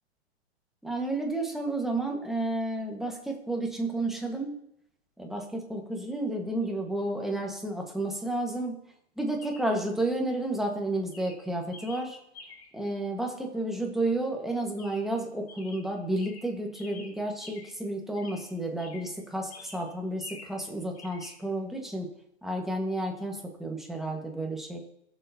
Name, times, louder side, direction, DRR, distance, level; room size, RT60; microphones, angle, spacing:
voice 1, 0.8-4.5 5.2-8.8 9.2-12.2 12.7-22.1 22.4-24.8, right 1 dB, ahead, 0 dB, 1.5 m, -31 dB
Chirp tweet, 6.6-6.8 9.4-9.8 10.5-10.8 11.1-12.8 14.8-15.2 15.5-17.9 18.2-19.2 19.5-20.7 20.9-21.4, left 3 dB, 65° left, 2.8 m, -49 dB
18.5 x 7.1 x 2.8 m, 0.77 s
hypercardioid pair, 130°, 34 cm